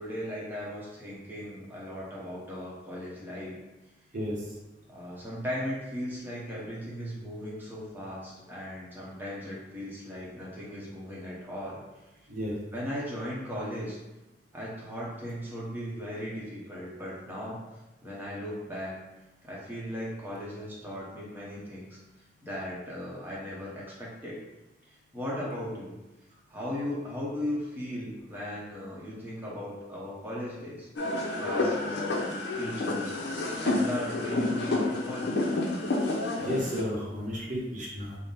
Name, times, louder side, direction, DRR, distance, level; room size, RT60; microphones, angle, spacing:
voice 1, 0.0-3.6 4.9-11.8 12.7-14.0 14.5-17.6 18.0-19.0 19.4-22.0 22.4-24.4 25.1-26.0 26.5-30.9 31.4-32.0 32.6-33.1 33.6-35.3, equal, 10° right, -6 dB, 0.8 m, -37 dB
sound 1, 31.0-36.8, left 2 dB, 65° left, 0.6 m, -29 dB
voice 2, 36.4-38.2, equal, 45° right, -4 dB, 0.8 m, -32 dB
3.8 x 2.1 x 3.9 m, 1.0 s
head